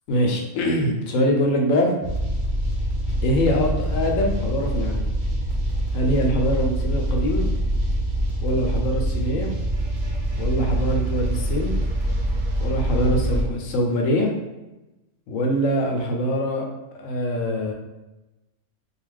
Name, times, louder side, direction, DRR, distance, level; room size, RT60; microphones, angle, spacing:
voice 1, 0.1-1.9 3.2-5.1 5.9-7.5 8.4-9.5 10.4-11.7 12.6-14.3 15.3-16.7 17.0-17.7, equal, 80° left, 1 dB, 0.9 m, -23 dB
sound 1, 2.0-13.4, right 1 dB, 60° right, 1.0 m, -24 dB
2.7 x 2.4 x 3.3 m, 1.0 s
omnidirectional pair, 1.4 m